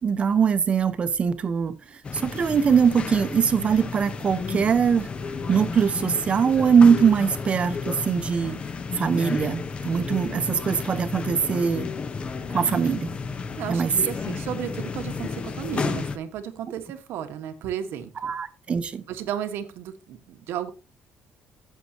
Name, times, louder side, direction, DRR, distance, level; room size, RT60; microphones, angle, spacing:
voice 1, 0.0-5.1 5.5-8.6 8.9-11.9 12.5-13.1 13.7-13.9 18.2-19.0, right 6 dB, 30° right, 0.9 m, -22 dB
sound 1, 2.0-16.2, left 5 dB, 30° left, 0.9 m, -32 dB
voice 2, 13.6-18.3 19.1-20.7, right 9 dB, 85° right, 1.5 m, -33 dB
14.5 x 7.7 x 2.9 m
cardioid pair, 165°, 4 cm